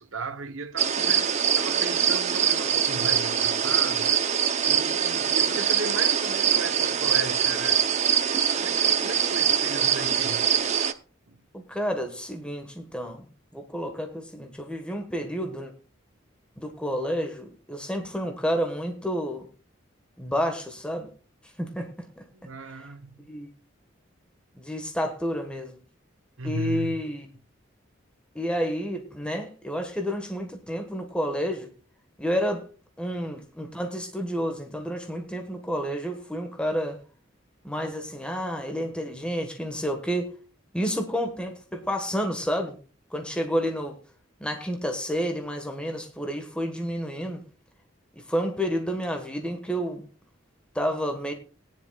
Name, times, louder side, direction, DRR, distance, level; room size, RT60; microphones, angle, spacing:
voice 1, 0.0-4.2 4.6-7.9 8.5-10.6 11.3-11.4 22.3-23.3 26.4-27.0, right 3 dB, 90° right, 1.0 m, -36 dB
sound 1, 0.8-10.9, right 8 dB, 35° right, 0.6 m, -23 dB
voice 2, 11.5-13.3 13.5-15.7 16.6-19.5 20.2-21.1 21.6-21.9 22.2-22.3 23.3-23.5 24.6-25.8 26.4-27.3 28.3-31.7 32.2-32.7 33.0-37.0 37.6-40.3 40.7-42.8 43.1-44.0 44.4-47.4 48.3-50.1 50.7-51.3, equal, 5° left, 1.4 m, -30 dB
18.5 x 10.5 x 2.3 m
head